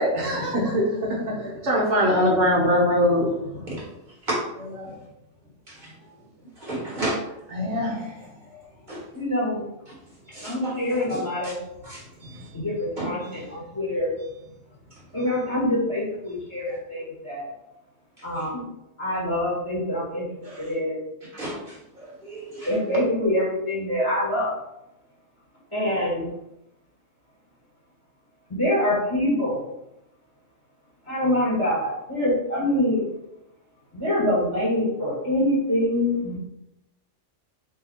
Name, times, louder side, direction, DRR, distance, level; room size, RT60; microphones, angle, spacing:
voice 1, 0.0-3.6 4.6-5.0 7.5-8.6 12.2-12.4, equal, 65° right, -3 dB, 1.2 m, -23 dB
voice 2, 6.6-7.2 8.9-9.0 10.3-10.8 11.1-11.5 11.8-12.0 13.0-13.1 15.2-15.4 16.6-16.8 18.3-18.5 20.4-20.6 21.3-22.8, right 1 dB, 35° right, -6 dB, 1.6 m, -33 dB
voice 3, 9.1-9.6 10.4-11.6 12.5-14.1 15.1-17.5 18.2-18.6 19.0-20.2 20.6-21.0 22.6-24.5 25.7-26.3 28.5-29.6 31.1-33.0 33.9-36.4, left 1 dB, 25° left, -7 dB, 1.7 m, -25 dB
3.7 x 2.8 x 4.3 m, 0.85 s
omnidirectional pair, 1.3 m